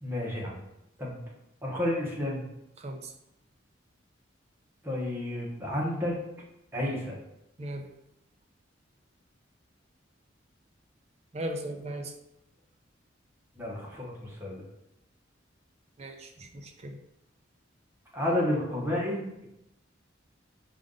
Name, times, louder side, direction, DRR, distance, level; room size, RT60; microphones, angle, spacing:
voice 1, 0.0-0.6 1.0-1.3 1.6-2.4 4.8-6.2 6.7-7.2 13.6-14.6 18.1-19.5, left 1 dB, 10° right, -3 dB, 1.0 m, -31 dB
voice 2, 2.8-3.1 7.6-7.8 11.3-12.1 16.0-17.0, right 1 dB, 35° right, 4 dB, 0.5 m, -37 dB
5.2 x 2.6 x 3.8 m, 0.87 s
head